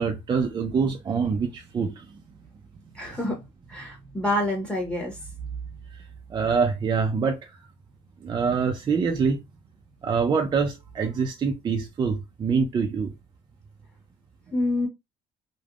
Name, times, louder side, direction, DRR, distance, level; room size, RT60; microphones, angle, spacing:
voice 1, 0.0-2.0 6.3-7.4 8.2-9.4 10.0-13.1, right 5 dB, 30° right, 0.4 m, -25 dB
voice 2, 2.9-3.4 3.7-5.2 14.5-14.9, left 1 dB, 5° left, 0.9 m, -27 dB
3.4 x 2.1 x 2.4 m
cardioid pair, 125°, 15 cm